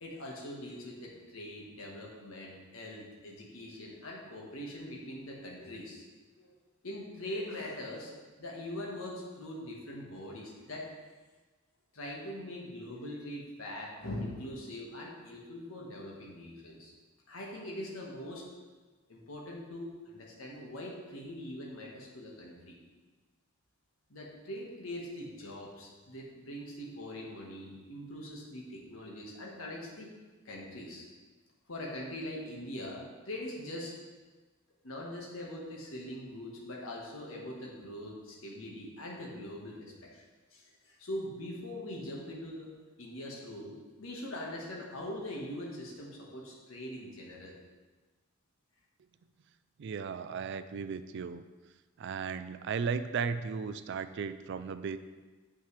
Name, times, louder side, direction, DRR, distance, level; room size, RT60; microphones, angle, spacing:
voice 1, 0.0-6.0 6.4-6.5 6.8-8.1 8.4-10.9 11.9-16.9 17.3-18.4 19.1-22.8 24.1-30.1 30.4-31.1 31.7-33.9 34.8-40.2 40.5-42.7 43.0-47.5, left 1 dB, 80° left, -2 dB, 1.4 m, -42 dB
voice 2, 49.8-51.4 52.0-55.0, right 5 dB, 55° right, 12 dB, 0.3 m, -35 dB
7.3 x 5.8 x 3.2 m, 1.3 s
head